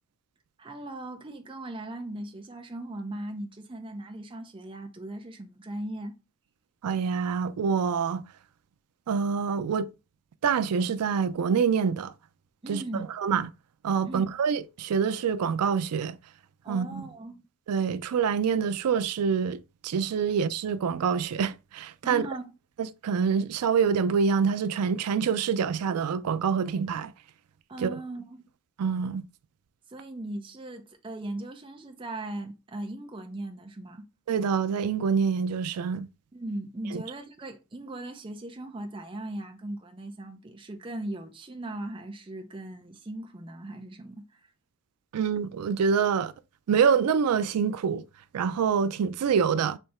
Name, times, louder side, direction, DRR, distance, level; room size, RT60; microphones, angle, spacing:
voice 1, 0.6-6.1 12.6-13.1 14.0-14.3 16.6-17.4 22.0-22.5 27.7-28.5 29.9-34.1 36.3-44.4, right 1 dB, 25° right, 0.5 m, -38 dB
voice 2, 6.8-8.2 9.1-9.9 10.4-12.1 12.7-12.8 13.2-13.5 13.8-16.2 16.7-17.0 17.7-22.2 23.0-27.1 27.8-27.9 28.8-29.3 34.3-36.1 36.9-37.0 45.1-46.3 46.7-48.0 48.3-49.8, right 6 dB, 90° right, 0.4 m, -26 dB
3.4 x 2.8 x 4.2 m
head